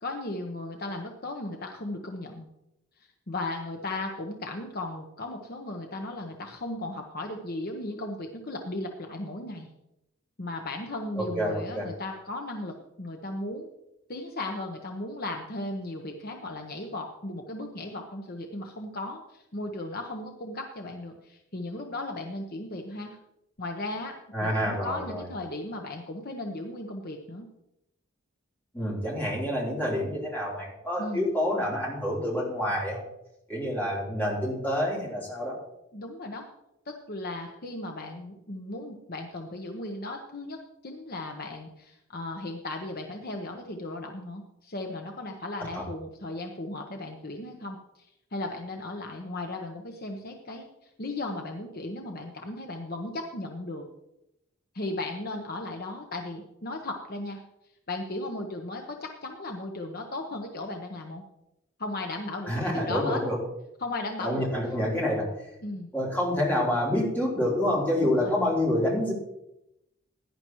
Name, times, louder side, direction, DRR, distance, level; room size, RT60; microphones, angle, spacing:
voice 1, 0.0-2.5 3.0-9.7 10.4-13.7 14.1-23.2 23.6-27.5 31.0-31.2 35.9-36.5 36.8-40.6 40.8-53.8 54.7-57.4 57.9-61.2 61.8-63.2 63.8-64.5 65.6-65.9 68.0-68.3, left 2 dB, 45° left, 2 dB, 1.1 m, -36 dB
voice 2, 11.2-11.9 24.3-25.2 28.7-33.0 33.5-35.6 45.7-45.9 62.5-63.4 64.2-65.3 65.9-69.1, left 1 dB, 10° left, -5 dB, 3.7 m, -27 dB
16.5 x 10.5 x 3.1 m, 0.85 s
head